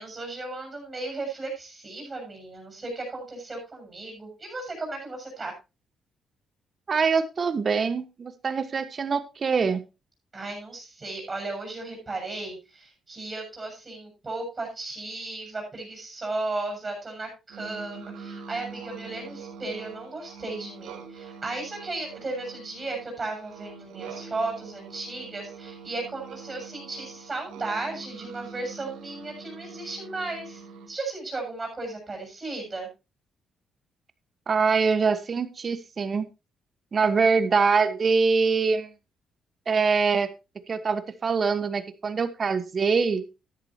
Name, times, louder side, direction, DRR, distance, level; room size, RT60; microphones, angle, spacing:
voice 1, 0.0-5.5 10.3-30.6 30.9-32.9, right 2 dB, 25° right, 1 dB, 6.6 m, -35 dB
voice 2, 6.9-9.8 34.5-36.3 36.9-38.9 39.7-40.3 40.7-43.2, right 5 dB, 40° right, 12 dB, 1.4 m, -24 dB
sound 1, 17.5-30.9, right 5 dB, 90° right, 3.3 m, -43 dB
13.0 x 10.5 x 2.9 m, 0.26 s
cardioid pair, 90°, 0 cm